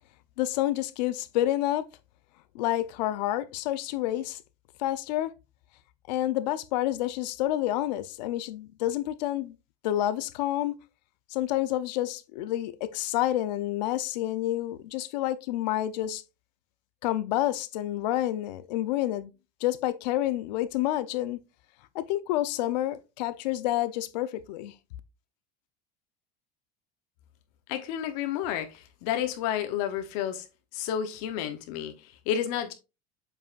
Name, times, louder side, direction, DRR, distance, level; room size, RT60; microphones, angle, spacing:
voice 1, 0.4-1.8 2.5-4.4 4.8-5.3 6.1-9.6 9.8-10.8 11.3-16.2 17.0-19.3 19.6-21.4 21.9-24.7, left 14 dB, 85° left, 0.8 m, -29 dB
voice 2, 27.7-30.4 30.7-32.7, left 10 dB, 60° left, 1.0 m, -31 dB
7.6 x 5.5 x 2.5 m
cardioid pair, 165°, 21 cm